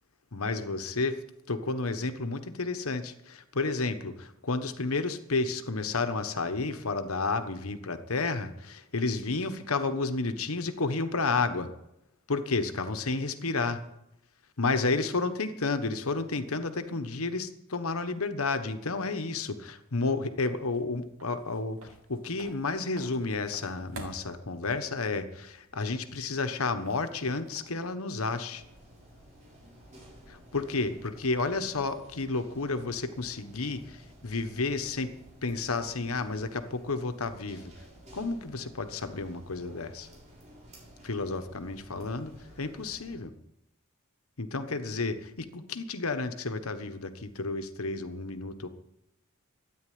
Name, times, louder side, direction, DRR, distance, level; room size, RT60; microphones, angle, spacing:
voice 1, 0.3-1.2 1.5-11.7 12.3-13.8 14.6-28.6 30.3-35.2 35.4-37.7 38.1-40.1 41.0-42.3 42.6-43.3 44.4-48.7, left 3 dB, 85° left, 9 dB, 1.3 m, -31 dB
sound 1, 20.3-27.9, right 2 dB, 75° right, 2.8 m, -51 dB
sound 2, 28.5-43.2, equal, 35° right, 6.2 m, -53 dB
13.5 x 9.7 x 9.5 m, 0.86 s
head